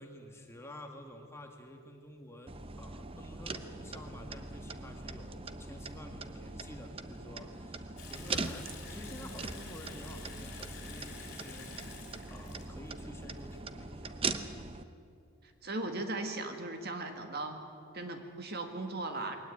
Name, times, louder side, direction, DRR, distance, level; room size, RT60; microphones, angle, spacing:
voice 1, 0.0-11.9 12.3-14.8, left 1 dB, 10° left, 3 dB, 1.7 m, -50 dB
sound 1, 2.5-14.8, right 3 dB, 25° right, 0.7 m, -41 dB
Water tap faucet / Sink (filling or washing) / Bathtub (filling or washing), 8.0-13.6, left 5 dB, 45° left, 4.5 m, -50 dB
voice 2, 15.6-17.6 17.9-19.4, right 2 dB, 45° right, 6 dB, 1.8 m, -37 dB
21.5 x 18.5 x 8.5 m, 2.4 s
head